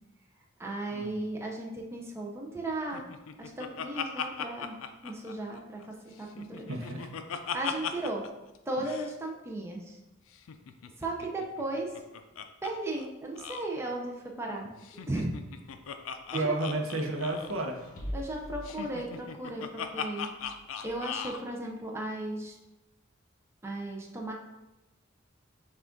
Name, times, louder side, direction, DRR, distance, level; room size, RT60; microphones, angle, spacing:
voice 1, 0.6-3.1 3.4-4.8 5.0-6.7 7.5-8.3 8.7-10.0 11.0-11.9 12.6-14.7 15.1-15.3 16.3-16.5 18.1-20.3 20.8-22.6 23.6-24.3, right 2 dB, 15° right, -1 dB, 0.5 m, -36 dB
Laughter, 2.9-5.9 6.2-8.3 8.5-8.6 8.8-9.1 10.3-12.7 13.0-13.1 13.4-13.7 14.8-17.6 18.6-21.4, left 7 dB, 75° left, 0.4 m, -38 dB
voice 2, 6.7-7.1 16.3-17.9, right 2 dB, 75° right, 3 dB, 0.7 m, -31 dB
sound 1, 16.8-19.5 20.4-21.4, left 1 dB, 45° left, 1.0 m, -44 dB
5.8 x 2.4 x 3.7 m, 0.98 s
head